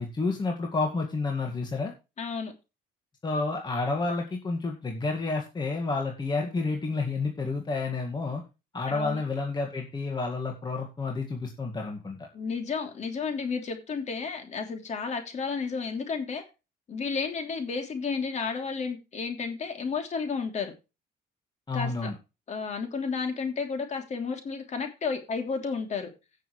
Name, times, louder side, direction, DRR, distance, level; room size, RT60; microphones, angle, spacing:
voice 1, 0.0-1.9 3.2-8.4 8.7-12.3 21.7-22.1, left 3 dB, 25° left, 2.0 m, -30 dB
voice 2, 2.2-2.5 8.9-9.2 12.3-16.4 16.9-20.7 21.7-22.1 22.5-26.1, left 5 dB, 45° left, 3.1 m, -32 dB
16.5 x 6.7 x 3.2 m
cardioid pair, 110°, 17 cm